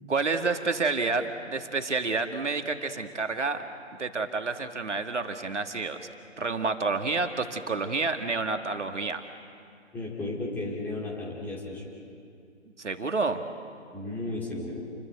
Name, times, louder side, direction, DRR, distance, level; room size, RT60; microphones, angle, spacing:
voice 1, 0.1-3.6 4.0-6.1 6.4-9.2 12.8-13.4, right 4 dB, 65° right, 6 dB, 1.9 m, -29 dB
voice 2, 9.9-11.9 13.9-14.8, left 2 dB, 5° left, -3 dB, 2.2 m, -34 dB
28.5 x 21.0 x 8.1 m, 2.3 s
figure-of-eight pair, 150°, 38 cm